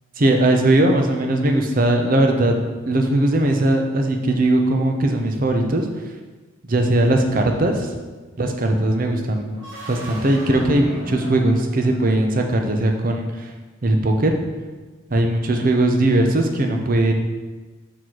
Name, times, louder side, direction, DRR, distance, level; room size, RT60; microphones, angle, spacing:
voice 1, 0.2-2.5 2.9-5.9 6.7-7.9 8.4-9.6 9.9-13.5 13.8-14.3 15.1-17.1, right 1 dB, 45° right, 4 dB, 0.6 m, -19 dB
sound 1, 9.5-12.5, right 1 dB, 70° right, 1.8 m, -38 dB
6.1 x 3.8 x 4.7 m, 1.3 s
head